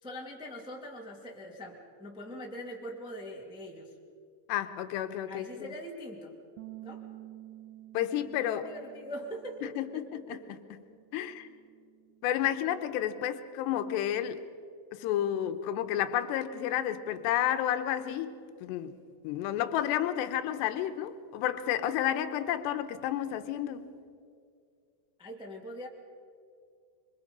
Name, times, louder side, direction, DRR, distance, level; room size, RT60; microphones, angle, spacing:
voice 1, 0.0-3.9 5.3-6.3 6.8-7.1 8.4-10.4 25.2-25.9, equal, ahead, -1 dB, 1.1 m, -42 dB
voice 2, 4.5-5.7 7.9-8.7 9.6-10.4 11.1-11.5 12.2-14.4 14.9-18.3 18.6-19.0 19.2-23.9, left 11 dB, 85° left, 10 dB, 3.0 m, -31 dB
Bass guitar, 6.6-12.8, right 15 dB, 80° right, 2.8 m, -51 dB
26.0 x 24.5 x 5.3 m, 2.3 s
omnidirectional pair, 5.0 m